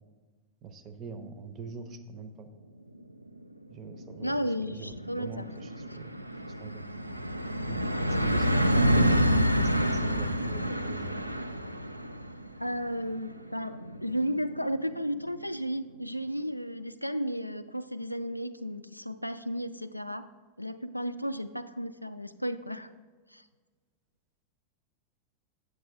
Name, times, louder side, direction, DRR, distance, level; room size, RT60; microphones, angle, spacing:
voice 1, 0.6-2.5 3.7-4.3 4.7-6.1 6.6-6.8 7.6-11.3, right 4 dB, 30° right, 10 dB, 0.7 m, -43 dB
sound 1, 3.1-3.2 3.5-3.6 3.9-15.3, equal, 90° right, 0.3 m, -29 dB
voice 2, 4.2-5.5 12.6-20.3 20.6-22.9 23.3-23.4, equal, 90° left, 11 dB, 0.3 m, -33 dB
8.0 x 7.7 x 3.5 m, 1.4 s
figure-of-eight pair, 90°, 0 cm